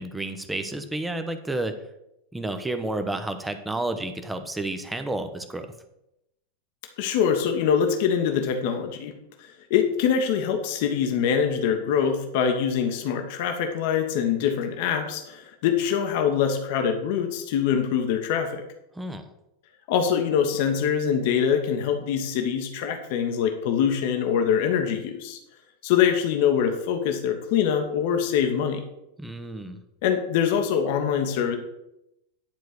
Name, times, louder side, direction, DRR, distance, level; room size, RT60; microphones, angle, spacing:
voice 1, 0.0-1.7 2.3-5.7 18.9-19.2 29.2-29.8, right 2 dB, 5° right, 9 dB, 0.9 m, -31 dB
voice 2, 7.0-18.6 19.9-25.4 25.8-28.8 30.0-31.6, left 8 dB, 50° left, 5 dB, 1.2 m, -24 dB
10.5 x 4.5 x 6.6 m, 0.86 s
figure-of-eight pair, 90°, 0 cm